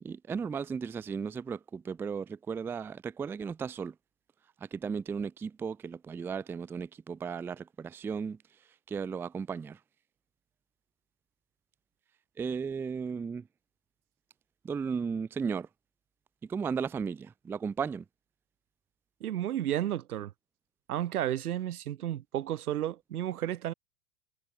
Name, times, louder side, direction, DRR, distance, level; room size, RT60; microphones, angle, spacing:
voice 1, 0.0-3.9 4.7-8.4 8.9-9.8 12.4-13.5 14.6-15.7 16.4-18.0, right 6 dB, 5° right, 0.6 m, -35 dB
voice 2, 19.2-20.3 20.9-23.7, right 12 dB, 85° right, 6.8 m, -32 dB
supercardioid pair, 170°, 43 cm